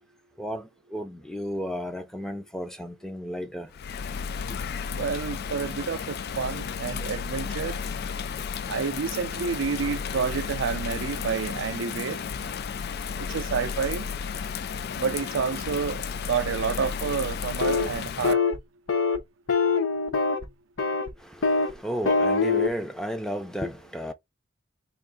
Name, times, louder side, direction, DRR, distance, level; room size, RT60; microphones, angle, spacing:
voice 1, 0.4-3.7 4.5-4.6 21.2-24.1, equal, 5° left, 0.6 m, -33 dB
Bird vocalization bird call bird song / Rain, 3.7-18.3, left 6 dB, 55° left, 0.3 m, -33 dB
voice 2, 4.9-7.8 8.7-12.2 13.2-14.1 15.0-18.4, right 6 dB, 70° right, 0.4 m, -29 dB
sound 1, 17.6-17.9 18.2-18.6 18.9-19.2 19.5-20.5 20.8-21.1 21.4-21.7 22.0-22.7, left 4 dB, 80° left, 0.7 m, -23 dB
3.7 x 2.5 x 3.7 m
head